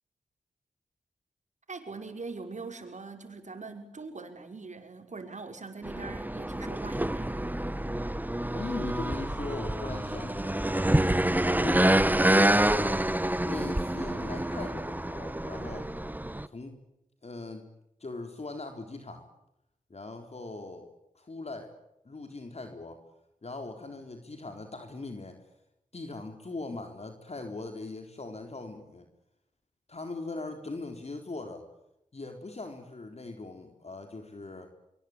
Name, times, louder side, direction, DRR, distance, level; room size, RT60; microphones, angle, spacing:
voice 1, 1.7-7.4, right 4 dB, 60° right, 5 dB, 5.9 m, -42 dB
sound 1, 5.8-16.5, right 1 dB, 10° right, 1.5 m, -27 dB
voice 2, 8.5-11.1 11.6-13.0 13.4-15.9 16.5-16.8 17.2-17.7 18.0-19.3 19.9-20.9 21.2-21.7 22.0-23.0 23.4-25.4 25.9-29.0 29.9-31.7 32.1-34.7, left 3 dB, 50° left, 5 dB, 3.9 m, -40 dB
25.0 x 25.0 x 8.8 m, 0.85 s
cardioid pair, 45°, 14 cm